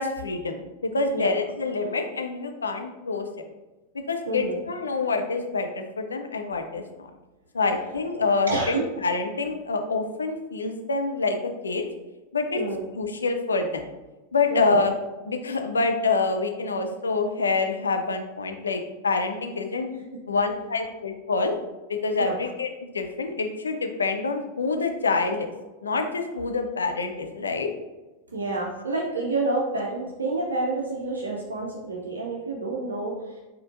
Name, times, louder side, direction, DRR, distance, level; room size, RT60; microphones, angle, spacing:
voice 1, 0.0-3.3 4.1-7.1 7.5-8.8 9.0-11.8 12.3-12.6 12.9-13.8 14.3-14.9 15.2-19.9 20.3-21.5 22.0-25.5 25.8-27.7, left 3 dB, 75° left, 5 dB, 0.4 m, -26 dB
voice 2, 4.3-4.6 8.5-8.8 12.5-12.8 14.5-14.8 22.2-22.3 28.3-33.4, right 2 dB, 75° right, -2 dB, 0.5 m, -28 dB
4.3 x 3.7 x 2.5 m, 1.1 s
figure-of-eight pair, 90°, 0 cm